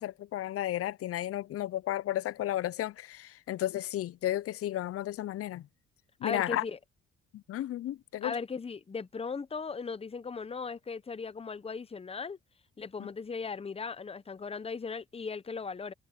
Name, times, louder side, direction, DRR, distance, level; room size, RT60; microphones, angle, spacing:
voice 1, 0.0-5.6 6.2-6.6 7.3-8.3 13.0-13.1, left 13 dB, 50° left, 0.5 m, -33 dB
voice 2, 6.2-6.8 8.2-12.4 12.8-15.9, left 5 dB, 20° left, 0.7 m, -37 dB
cardioid pair, 90°, 30 cm